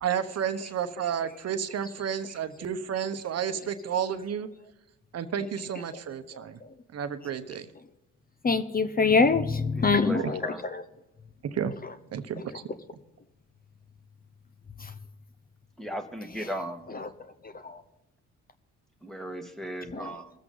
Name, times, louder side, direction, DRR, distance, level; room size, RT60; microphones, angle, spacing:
voice 1, 0.0-4.5 5.1-6.6 6.9-7.7 10.2-10.3 11.4-11.7 12.1-12.6, right 8 dB, 55° right, 10 dB, 1.0 m, -31 dB
voice 2, 8.4-10.4 10.7-10.8 17.7-17.8 19.9-20.1, left 4 dB, 30° left, 11 dB, 0.8 m, -24 dB
voice 3, 9.8-10.6 15.8-16.8 19.0-20.3, equal, ahead, 6 dB, 1.6 m, -37 dB
20.0 x 8.0 x 3.9 m, 0.99 s
cardioid pair, 90°, 30 cm